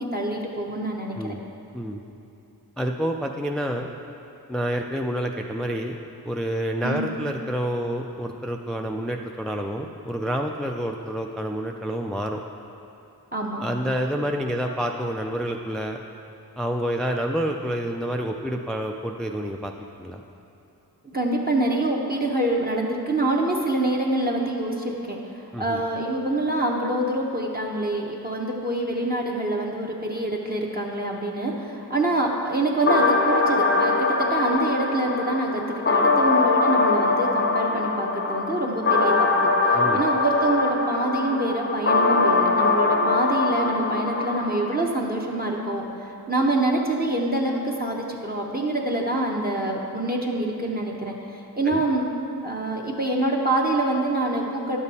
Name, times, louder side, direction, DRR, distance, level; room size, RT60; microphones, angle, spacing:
voice 1, 0.0-1.4 6.8-7.0 13.3-13.6 21.0-25.2 25.6-52.1 52.4-54.8, right 2 dB, 25° right, 0 dB, 0.7 m, -26 dB
voice 2, 2.8-3.9 4.5-6.0 6.3-12.4 13.6-16.0 16.6-19.7 20.0-20.2 25.5-25.8 39.7-40.0 51.7-51.8, equal, ahead, 2 dB, 0.3 m, -28 dB
sound 1, 32.9-44.9, left 3 dB, 30° left, 0.7 m, -22 dB
10.5 x 7.1 x 4.1 m, 2.8 s
wide cardioid pair, 95°, 38 cm